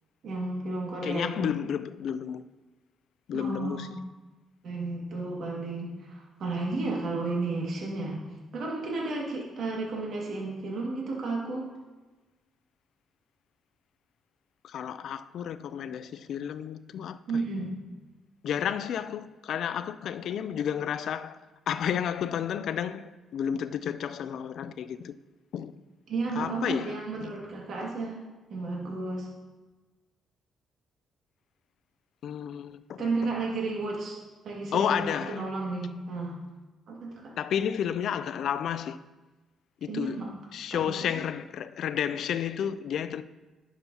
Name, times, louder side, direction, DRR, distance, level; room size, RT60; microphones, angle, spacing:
voice 1, 0.2-1.5 3.3-4.0 4.6-8.2 8.5-11.7 17.3-17.7 26.1-28.2 28.5-29.3 33.0-34.2 34.4-36.4 36.9-37.3 39.9-40.3 40.7-41.1, right 3 dB, 65° right, 2.0 m, -33 dB
voice 2, 1.0-2.4 3.3-3.9 14.6-17.2 18.4-21.4 21.7-25.1 25.5-25.8 26.4-26.9 27.2-27.3 32.2-33.0 34.7-35.4 37.4-39.0 39.8-40.2 40.5-43.2, left 9 dB, 70° left, 0.3 m, -31 dB
10.5 x 6.0 x 2.8 m
cardioid pair, 90°, 0 cm